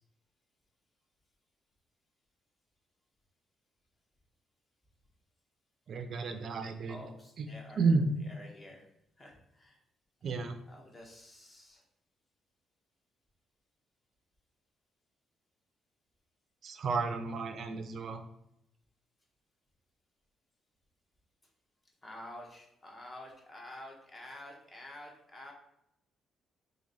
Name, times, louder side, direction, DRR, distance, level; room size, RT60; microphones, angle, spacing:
voice 1, 5.9-7.0 7.4-7.5 7.8-8.1 10.2-10.6 16.6-18.2, right 4 dB, 60° right, 7 dB, 0.4 m, -31 dB
voice 2, 6.9-8.9 9.2-9.8 10.3-11.8 22.0-25.5, left 1 dB, 30° left, 0 dB, 1.0 m, -50 dB
3.0 x 2.7 x 3.9 m, 0.81 s
cardioid pair, 90°, 0 cm